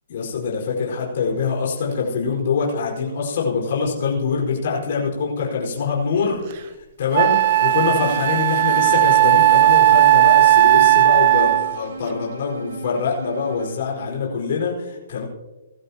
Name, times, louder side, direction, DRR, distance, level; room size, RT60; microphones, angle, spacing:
voice 1, 0.1-15.2, left 5 dB, 50° left, -2 dB, 4.9 m, -24 dB
Wind instrument woodwind instrument, 6.5-6.6 7.1-11.8, right 15 dB, 40° right, 0.4 m, -15 dB
sound 1, 7.6-13.8, right 2 dB, 70° right, 4.1 m, -36 dB
19.0 x 14.5 x 2.9 m, 1.1 s
hypercardioid pair, 170°, 0 cm